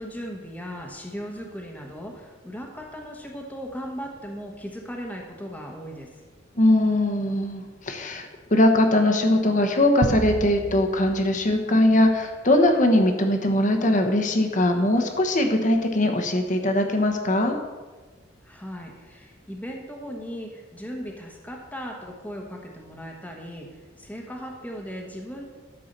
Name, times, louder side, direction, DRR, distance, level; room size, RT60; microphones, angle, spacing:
voice 1, 0.0-6.1 18.4-25.5, equal, 10° left, 1 dB, 1.2 m, -37 dB
voice 2, 6.6-17.6, left 1 dB, 40° left, 5 dB, 1.2 m, -21 dB
sound 1, 10.0-12.6, right 3 dB, 30° right, 0.3 m, -32 dB
12.5 x 4.7 x 6.7 m, 1.3 s
head